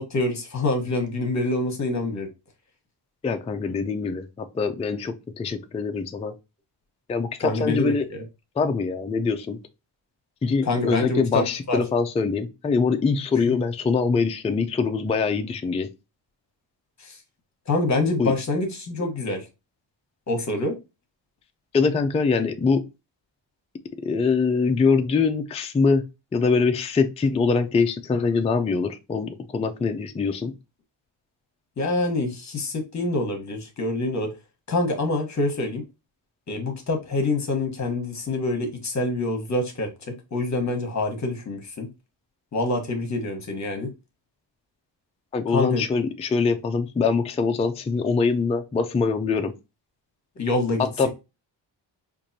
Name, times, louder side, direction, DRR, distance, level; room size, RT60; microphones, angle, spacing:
voice 1, 0.0-2.3 7.4-8.2 10.6-11.8 13.4-13.5 17.0-17.2 17.7-19.4 20.3-20.7 31.8-34.3 34.7-35.8 36.5-39.9 40.3-41.9 42.5-43.9 45.5-45.8 50.4-51.1, left 2 dB, 35° left, 1.1 m, -26 dB
voice 2, 3.2-6.3 7.1-8.0 8.6-9.6 10.4-15.9 18.2-18.3 21.7-22.8 24.0-26.0 26.3-30.5 45.3-49.5 50.8-51.1, left 4 dB, 15° left, 0.3 m, -23 dB
4.6 x 2.5 x 2.6 m
cardioid pair, 125°, 47 cm